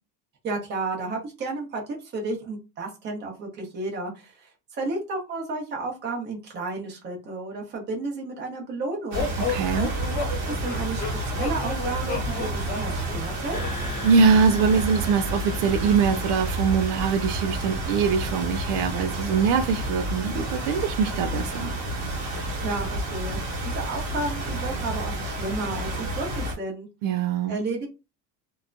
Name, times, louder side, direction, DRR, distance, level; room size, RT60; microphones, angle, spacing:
voice 1, 0.4-9.3 10.3-13.6 22.4-23.4 23.6-26.9 27.5-27.9, right 3 dB, 30° right, 0.9 m, -32 dB
sound 1, 9.1-14.0, left 4 dB, 25° left, 0.4 m, -33 dB
sound 2, 9.1-26.5, right 1 dB, 55° right, 1.2 m, -30 dB
voice 2, 9.5-9.9 14.0-21.7 27.0-27.6, right 5 dB, 75° right, 0.5 m, -23 dB
sound 3, 13.5-19.9, left 3 dB, 85° left, 0.8 m, -42 dB
2.8 x 2.2 x 2.5 m
cardioid pair, 175°, 35 cm